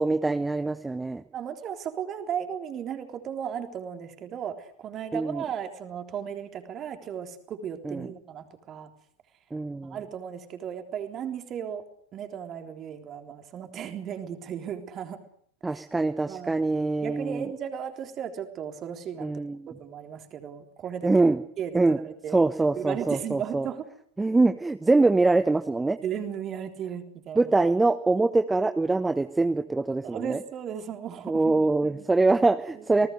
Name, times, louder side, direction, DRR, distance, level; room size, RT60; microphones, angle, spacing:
voice 1, 0.0-1.2 5.1-5.4 7.8-8.1 9.5-10.0 15.6-17.5 19.2-19.7 21.0-21.4 21.7-22.0 22.3-23.7 24.2-26.0 27.4-30.4 31.3-33.1, right 3 dB, 10° right, 11 dB, 1.0 m, -24 dB
voice 2, 1.3-8.9 9.8-11.9 12.1-15.2 15.7-15.8 16.3-16.7 17.0-19.3 19.7-21.1 21.6-22.4 22.8-23.8 26.0-27.5 30.0-32.1 32.8-32.9, right 8 dB, 30° right, 6 dB, 3.6 m, -35 dB
28.0 x 19.5 x 6.6 m, 0.64 s
figure-of-eight pair, 90°, 0 cm